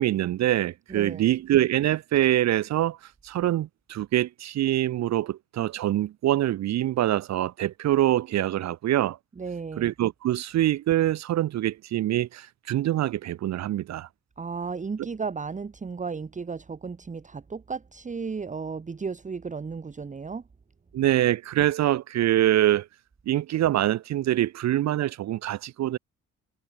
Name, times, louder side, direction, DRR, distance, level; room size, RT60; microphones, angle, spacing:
voice 1, 0.0-9.2 9.8-14.1 20.9-22.9 23.3-26.0, right 13 dB, 65° right, 0.7 m, -24 dB
voice 2, 0.9-1.3 9.4-9.9 14.4-20.4, right 5 dB, 25° right, 1.2 m, -34 dB
cardioid pair, 90°, 30 cm